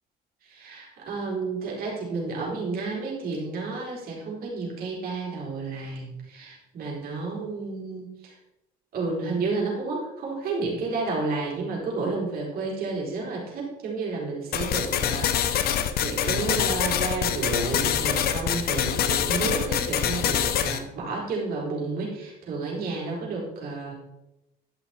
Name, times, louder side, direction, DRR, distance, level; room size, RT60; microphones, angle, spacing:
voice 1, 0.4-8.3 8.9-23.9, right 3 dB, 65° right, -3 dB, 4.0 m, -31 dB
sound 1, 14.5-20.8, left 9 dB, 65° left, 0.8 m, -25 dB
11.0 x 6.1 x 4.3 m, 0.93 s
cardioid pair, 110°, 17 cm